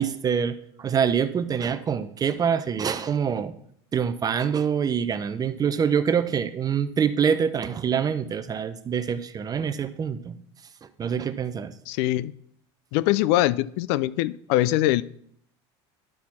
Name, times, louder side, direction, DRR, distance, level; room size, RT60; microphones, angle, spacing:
voice 1, 0.0-3.5 3.9-10.4 11.0-11.7, right 7 dB, 25° right, 12 dB, 0.6 m, -25 dB
voice 2, 11.9-12.3 12.9-15.0, left 16 dB, 70° left, 18 dB, 0.4 m, -23 dB
11.5 x 4.2 x 4.2 m, 0.67 s
supercardioid pair, 105°, 14 cm